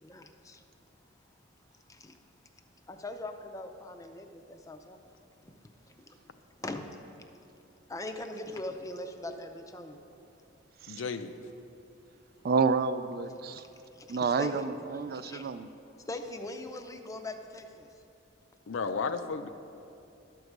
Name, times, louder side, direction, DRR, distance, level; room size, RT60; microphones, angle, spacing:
voice 1, 0.0-0.6 1.9-2.1 2.9-5.0 6.1-6.2 6.6-6.8 7.9-10.0 13.5-13.6 14.1-14.7 15.1-15.5 16.1-17.9, left 2 dB, 15° left, 6 dB, 0.5 m, -41 dB
voice 2, 10.9-11.3 18.7-19.5, left 5 dB, 75° left, 9 dB, 0.5 m, -33 dB
voice 3, 12.4-13.6 14.1-15.7, right 5 dB, 50° right, 12 dB, 0.3 m, -29 dB
12.0 x 4.7 x 6.6 m, 2.8 s
head